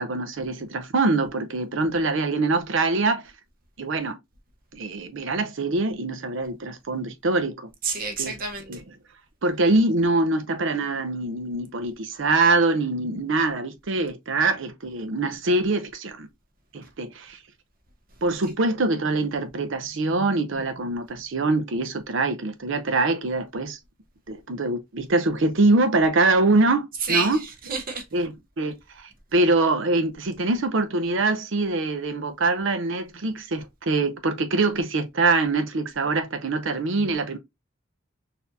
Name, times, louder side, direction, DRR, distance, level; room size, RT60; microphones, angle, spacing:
voice 1, 0.0-3.2 3.8-4.2 4.7-7.7 8.2-8.4 8.7-8.8 9.4-16.3 16.7-17.4 18.2-23.8 24.3-27.4 28.1-37.4, right 2 dB, 65° right, 0.6 m, -24 dB
voice 2, 7.8-8.8 27.0-28.0, right 4 dB, 45° right, 0.9 m, -28 dB
4.2 x 2.7 x 2.6 m
head